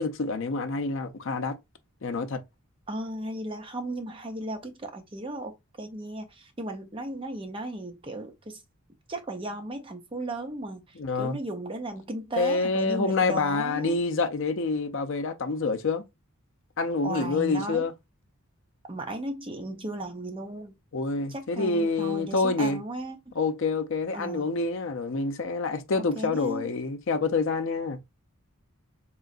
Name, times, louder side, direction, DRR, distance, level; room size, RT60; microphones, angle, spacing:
voice 1, 0.0-1.6 2.0-2.4 11.0-11.4 12.4-16.0 16.8-17.9 20.9-22.8 23.4-28.0, left 3 dB, 60° left, 0.5 m, -27 dB
voice 2, 2.9-8.6 9.1-10.9 11.1-14.0 17.0-17.8 18.9-20.7 21.3-23.3 24.1-24.5 25.9-26.7, right 1 dB, 25° right, 0.6 m, -35 dB
3.7 x 3.1 x 2.4 m
head